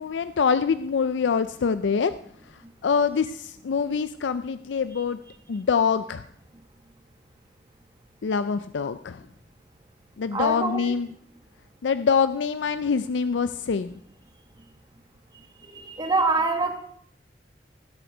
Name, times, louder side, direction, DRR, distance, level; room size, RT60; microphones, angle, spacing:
voice 1, 0.0-2.1 2.8-5.2 5.5-6.2 8.2-9.2 10.2-11.1 11.8-14.0, left 6 dB, 90° left, 12 dB, 0.4 m, -25 dB
voice 2, 10.3-10.9 15.6-16.8, right 3 dB, 25° right, 6 dB, 1.5 m, -25 dB
17.5 x 7.9 x 5.1 m, 0.68 s
head